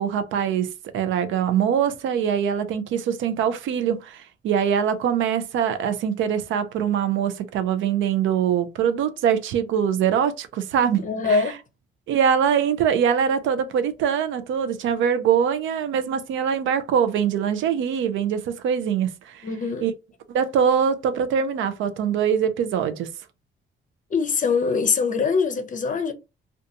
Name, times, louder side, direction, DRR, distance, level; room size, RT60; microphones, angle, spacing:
voice 1, 0.0-11.4 12.1-19.4 19.8-19.9 20.3-23.1, right 8 dB, 80° right, 0.5 m, -23 dB
voice 2, 11.0-11.6 19.4-19.9 24.1-26.1, left 5 dB, 40° left, 0.6 m, -23 dB
2.5 x 2.3 x 2.6 m
cardioid pair, 90°, 20 cm